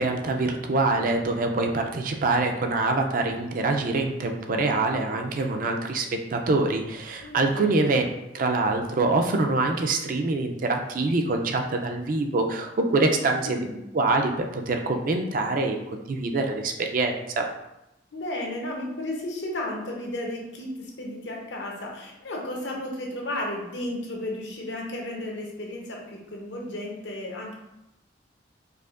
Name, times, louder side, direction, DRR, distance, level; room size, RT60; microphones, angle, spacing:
voice 1, 0.0-8.0 8.3-13.6 13.9-14.3 14.7-15.8 16.1-17.4, right 3 dB, 50° right, 4 dB, 0.4 m, -25 dB
voice 2, 7.2-7.8 13.4-13.8 18.1-27.5, left 1 dB, 85° left, -1 dB, 0.9 m, -33 dB
4.7 x 2.6 x 2.4 m, 0.90 s
head